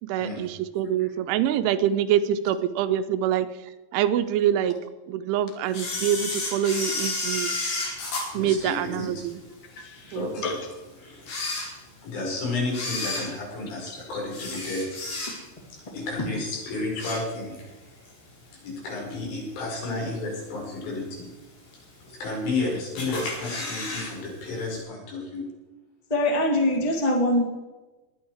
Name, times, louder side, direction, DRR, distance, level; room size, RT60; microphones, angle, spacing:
voice 1, 0.0-3.5 3.9-4.8 5.1-7.5 8.3-9.4 10.1-10.5, right 10 dB, 85° right, 10 dB, 3.2 m, -25 dB
Camera, 5.7-9.3 9.8-9.9 10.6-10.7 11.2-12.2 12.7-15.7 16.0-16.3 16.7-17.7 18.1-18.2 19.1-19.2 19.8-20.2 20.6-20.7 20.9-21.0 21.1-21.2 22.0-22.5 23.0-24.1 24.4-24.5 24.7-24.8, left 2 dB, 55° left, 6.1 m, -32 dB
voice 2, 8.3-9.3 10.2-10.5 11.0-11.3 12.0-14.8 15.9-17.7 18.6-21.3 22.2-25.5, left 3 dB, 80° left, -3 dB, 7.6 m, -32 dB
voice 3, 9.7-10.6 16.2-16.3 26.1-27.4, left 1 dB, 15° left, 0 dB, 1.5 m, -24 dB
21.5 x 9.3 x 4.8 m, 1.1 s
omnidirectional pair, 5.5 m